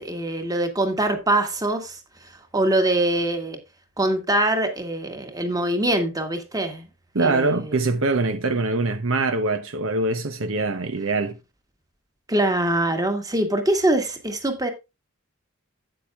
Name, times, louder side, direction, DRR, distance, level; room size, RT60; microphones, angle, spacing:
voice 1, 0.0-2.0 2.5-3.6 4.0-6.8 7.2-7.6 12.3-14.7, right 1 dB, 15° right, 1.7 m, -23 dB
voice 2, 7.1-11.4, right 3 dB, 65° right, 0.9 m, -23 dB
12.5 x 8.8 x 2.3 m
head